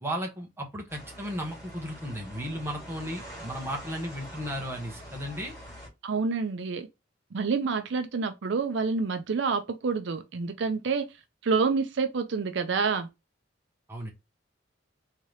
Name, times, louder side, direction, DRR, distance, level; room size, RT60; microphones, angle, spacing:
voice 1, 0.0-5.5 13.9-14.1, equal, 10° right, 0.9 m, -35 dB
sound 1, 0.9-5.9, equal, 15° left, 2.5 m, -44 dB
voice 2, 6.0-6.9 7.3-11.1 11.4-13.1, right 4 dB, 65° right, 0.4 m, -28 dB
3.6 x 2.9 x 3.2 m
head